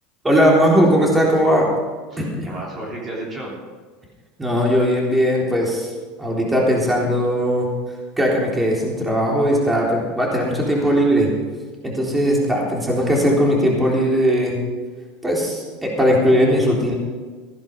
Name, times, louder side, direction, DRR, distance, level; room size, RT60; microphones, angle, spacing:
voice 1, 0.2-1.7 2.2-2.5 4.4-5.9 6.2-7.7 8.2-11.3 11.8-14.6 15.2-16.9, equal, 10° right, -2 dB, 3.8 m, -18 dB
voice 2, 2.1-3.6 10.6-11.2, right 1 dB, 30° right, -3 dB, 3.4 m, -34 dB
16.0 x 10.5 x 5.3 m, 1.4 s
supercardioid pair, 115°, 0 cm